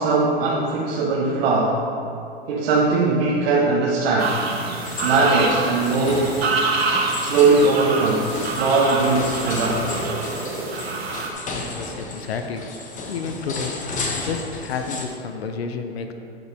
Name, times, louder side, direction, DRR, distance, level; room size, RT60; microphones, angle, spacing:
voice 1, 0.0-1.8 2.5-4.4 5.0-6.3 7.2-9.9, right 3 dB, 70° right, -5 dB, 1.4 m, -20 dB
sound 1, 4.2-11.3, right 3 dB, 85° right, 1.4 m, -26 dB
sound 2, 4.8-15.1, left 3 dB, 25° left, 1.1 m, -33 dB
voice 2, 11.7-12.6 13.1-13.7 14.1-16.1, left 5 dB, 80° left, 6 dB, 0.9 m, -30 dB
13.5 x 5.3 x 3.5 m, 2.8 s
hypercardioid pair, 110°, 31 cm